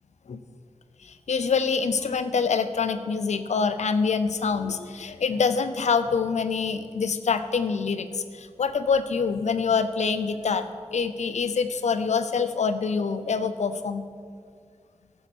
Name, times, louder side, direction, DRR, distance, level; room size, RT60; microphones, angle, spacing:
voice 1, 1.0-14.0, left 5 dB, 85° left, 11 dB, 0.6 m, -25 dB
12.5 x 7.1 x 6.2 m, 2.1 s
cardioid pair, 55°, 12 cm